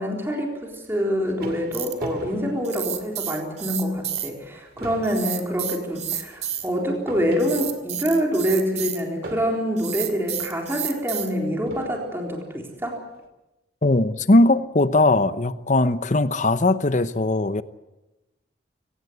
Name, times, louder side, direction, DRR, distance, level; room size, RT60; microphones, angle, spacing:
voice 1, 0.0-13.0, equal, 15° right, 0 dB, 4.0 m, -26 dB
sound 1, 0.8-3.5 4.0-4.1 4.4-8.0 9.2-10.0 10.9-11.0 11.7-12.2, right 1 dB, 60° right, 2.6 m, -40 dB
sound 2, 1.7-2.1 2.6-4.3 5.0-6.7 7.4-9.0 9.8-11.3, right 10 dB, 40° right, 2.2 m, -30 dB
voice 2, 13.8-17.6, left 2 dB, 45° left, 13 dB, 0.9 m, -19 dB
25.0 x 17.5 x 8.2 m, 1.0 s
head